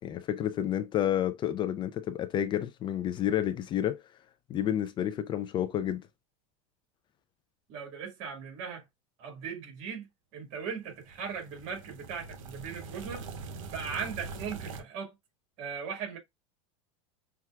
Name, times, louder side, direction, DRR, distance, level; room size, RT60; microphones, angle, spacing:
voice 1, 0.0-4.0 4.5-6.1, left 11 dB, 30° left, 0.4 m, -30 dB
voice 2, 7.7-8.8 9.2-10.1 10.3-13.2 13.7-15.1 15.6-16.2, right 6 dB, 60° right, 1.9 m, -38 dB
sound 1, 10.9-14.8, right 4 dB, 85° right, 0.7 m, -43 dB
5.8 x 2.3 x 2.3 m
supercardioid pair, 130°, 17 cm